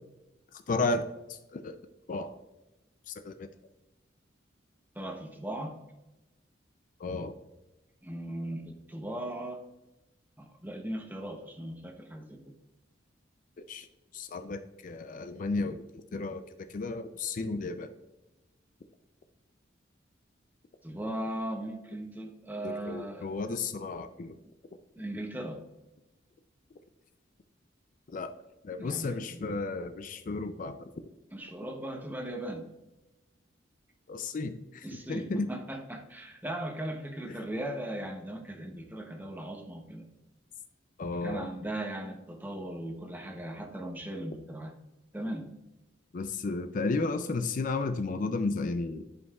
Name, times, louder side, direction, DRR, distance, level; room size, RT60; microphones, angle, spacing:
voice 1, 0.7-1.0 1.3-1.8 2.1-2.3 3.1-3.5 7.0-7.3 13.7-13.9 14.1-15.8 16.1-16.4 16.7-17.9 22.6-24.3 28.1-28.3 28.6-30.8 34.1-35.5 41.0-41.5 46.1-49.0, left 3 dB, 45° left, 9 dB, 0.4 m, -33 dB
voice 2, 4.9-5.8 8.0-9.6 10.4-12.5 20.8-23.4 25.0-25.6 28.8-29.5 31.3-32.7 34.8-40.1 41.1-44.7 45.1-45.5, right 1 dB, 10° right, 3 dB, 0.8 m, -38 dB
11.0 x 5.3 x 2.3 m, 0.99 s
head